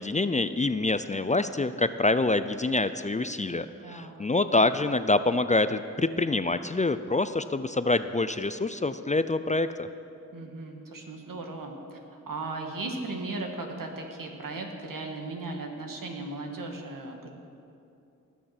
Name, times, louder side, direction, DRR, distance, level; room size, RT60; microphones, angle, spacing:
voice 1, 0.0-9.9, left 2 dB, 20° left, 12 dB, 0.4 m, -26 dB
voice 2, 3.8-4.1 10.3-17.3, right 2 dB, 75° right, 2 dB, 1.8 m, -37 dB
19.5 x 6.5 x 5.9 m, 2.6 s
cardioid pair, 45°, 33 cm